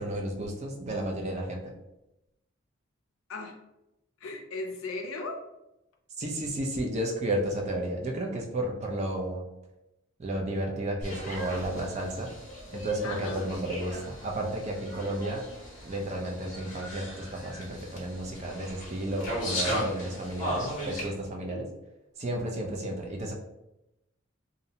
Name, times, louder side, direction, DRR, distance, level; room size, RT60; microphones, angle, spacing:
voice 1, 0.0-1.7 6.2-9.5 10.2-12.3 12.7-15.4 15.8-21.7 22.2-23.3, right 1 dB, 30° right, 1 dB, 0.3 m, -32 dB
voice 2, 3.3-3.6 4.2-5.4 13.0-13.5 21.5-21.7, left 3 dB, 80° left, 3 dB, 0.5 m, -37 dB
sound 1, 11.0-21.1, equal, 35° left, 0.7 m, -37 dB
2.5 x 2.0 x 2.7 m, 0.91 s
head